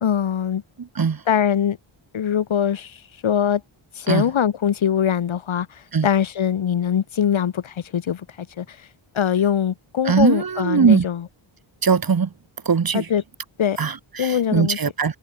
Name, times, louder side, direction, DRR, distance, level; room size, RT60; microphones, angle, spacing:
voice 1, 0.0-0.6 1.3-1.8 2.1-3.6 3.9-8.8 9.1-11.2 12.9-13.2 13.6-13.8 14.2-14.8, left 8 dB, 70° left, 1.3 m, -22 dB
voice 2, 0.8-1.2 4.1-4.3 5.9-6.1 10.0-11.0 11.8-12.3 12.6-13.1 13.8-15.2, right 6 dB, 45° right, 1.5 m, -20 dB
wide cardioid pair, 105°, 49 cm